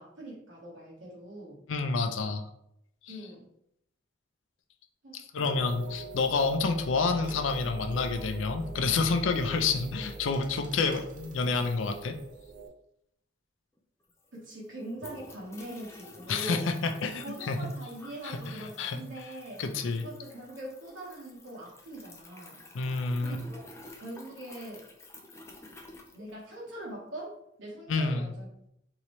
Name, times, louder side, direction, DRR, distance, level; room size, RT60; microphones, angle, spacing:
voice 1, 0.0-1.6 3.1-3.4 5.0-5.2 14.3-16.7 17.2-19.6 20.0-22.6 23.2-24.8 26.1-28.5, right 1 dB, 80° right, -4 dB, 1.1 m, -42 dB
voice 2, 1.7-2.4 5.3-12.2 16.3-17.7 18.2-18.4 18.8-19.0 19.6-20.0 22.7-23.4 27.9-28.3, left 4 dB, 85° left, 6 dB, 0.5 m, -28 dB
sound 1, 5.4-12.7, right 2 dB, 40° right, 0.6 m, -42 dB
sound 2, 13.8-13.9 14.0-26.8, left 2 dB, 15° left, 0.4 m, -51 dB
3.8 x 3.1 x 3.0 m, 0.75 s
head